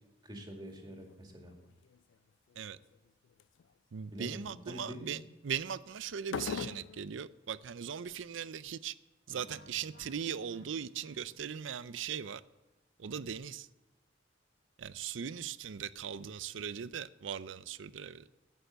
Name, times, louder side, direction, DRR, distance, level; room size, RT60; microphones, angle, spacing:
voice 1, 0.2-1.5 4.1-5.3, equal, 25° right, 2.2 m, -46 dB
sound 1, 0.8-1.1 1.5-2.0 2.6-3.0 3.4-3.6 6.2-7.1, left 6 dB, 80° left, 0.3 m, -40 dB
voice 2, 3.9-8.9 9.3-12.4 13.0-13.7 14.8-18.3, right 7 dB, 85° right, 0.5 m, -39 dB
sound 2, 9.3-12.2, equal, 55° left, 1.7 m, -59 dB
11.5 x 9.2 x 6.6 m
head